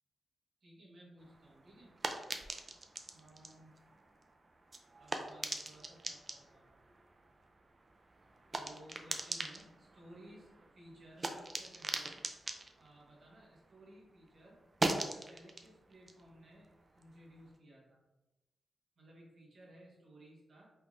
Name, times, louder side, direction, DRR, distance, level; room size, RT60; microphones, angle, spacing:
voice 1, 0.6-2.2 3.1-3.7 5.0-6.7 8.5-12.2 12.8-18.0 19.0-20.7, right 1 dB, 60° right, -4 dB, 1.1 m, -58 dB
sound 1, 1.2-14.0 14.3-17.5, right 2 dB, 30° right, 0.3 m, -42 dB
3.5 x 2.5 x 3.0 m, 0.99 s
wide cardioid pair, 120°, 0 cm